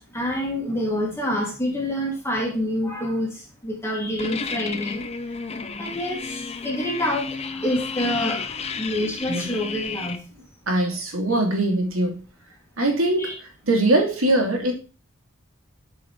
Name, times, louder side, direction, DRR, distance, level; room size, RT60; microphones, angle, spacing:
voice 1, 0.1-3.3 3.6-5.0 5.8-10.2 11.3-11.4 13.2-13.3, left 1 dB, 10° left, -1 dB, 2.1 m, -27 dB
sound 1, 4.2-10.2, left 5 dB, 30° left, 0.5 m, -32 dB
voice 2, 10.7-12.2 12.8-13.3 13.6-14.7, right 1 dB, 80° right, 2 dB, 2.6 m, -21 dB
11.0 x 4.9 x 3.7 m, 0.34 s
head